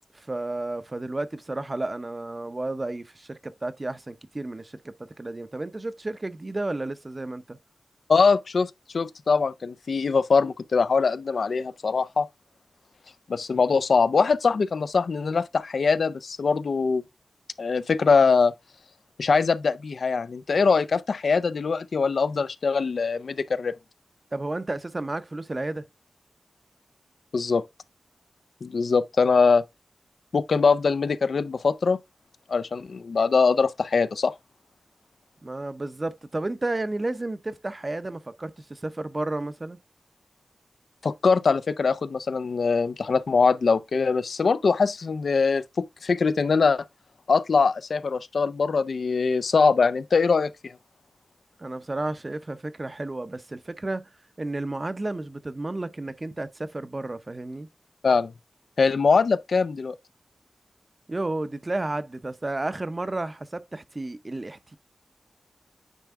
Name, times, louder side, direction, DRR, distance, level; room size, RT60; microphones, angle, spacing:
voice 1, 0.1-7.6 24.3-25.9 35.4-39.8 51.6-54.1 54.4-57.7 61.1-64.8, right 2 dB, 30° right, 0.6 m, -32 dB
voice 2, 8.1-12.3 13.3-17.0 17.6-18.5 19.2-23.8 27.3-27.6 28.6-29.6 30.3-32.0 32.5-34.3 41.0-46.8 47.3-50.7 58.0-58.3 58.8-60.0, left 4 dB, 75° left, 0.4 m, -22 dB
9.1 x 3.4 x 3.5 m
wide cardioid pair, 80°, 0 cm